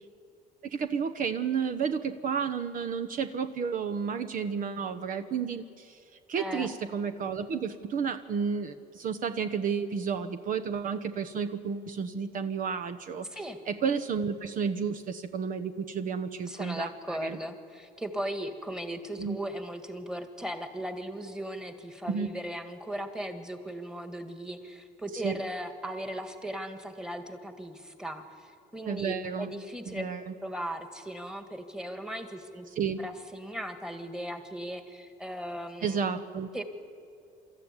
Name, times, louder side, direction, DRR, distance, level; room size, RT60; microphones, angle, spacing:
voice 1, 0.7-6.0 6.3-13.3 13.7-17.4 19.2-19.4 22.1-22.3 25.2-25.4 28.8-29.5 29.9-30.3 32.8-33.0 35.8-36.5, right 6 dB, 55° right, 8 dB, 1.0 m, -31 dB
voice 2, 6.4-6.7 13.3-13.6 16.5-32.7 33.0-36.0 36.5-36.6, equal, 5° right, 8 dB, 1.9 m, -37 dB
25.5 x 13.5 x 9.8 m, 2.5 s
cardioid pair, 110°, 17 cm